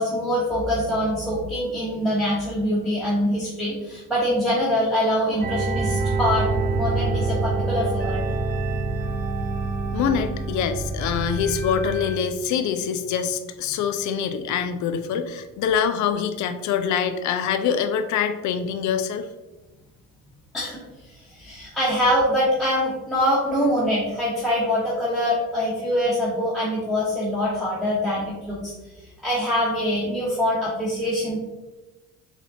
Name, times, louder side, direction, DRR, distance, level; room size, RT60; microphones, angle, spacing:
voice 1, 0.0-6.5 6.7-8.2 20.5-20.8 21.3-28.7 29.2-31.4, equal, ahead, -7 dB, 1.0 m, -24 dB
sound 1, 5.4-12.2, right 3 dB, 20° right, 0.5 m, -26 dB
voice 2, 9.9-19.3, left 7 dB, 45° left, 9 dB, 0.4 m, -25 dB
4.1 x 2.5 x 2.7 m, 1.1 s
hypercardioid pair, 60°, 44 cm